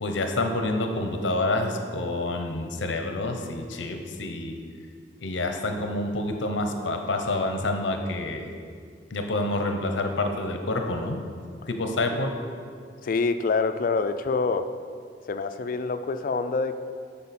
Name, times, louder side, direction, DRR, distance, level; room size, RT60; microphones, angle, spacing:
voice 1, 0.0-4.6 5.2-8.5 9.1-11.2 11.7-12.4, left 2 dB, 70° left, 5 dB, 0.7 m, -28 dB
voice 2, 13.0-14.7 15.3-16.7, left 4 dB, 45° left, 9 dB, 0.3 m, -26 dB
8.5 x 5.5 x 4.2 m, 2.1 s
head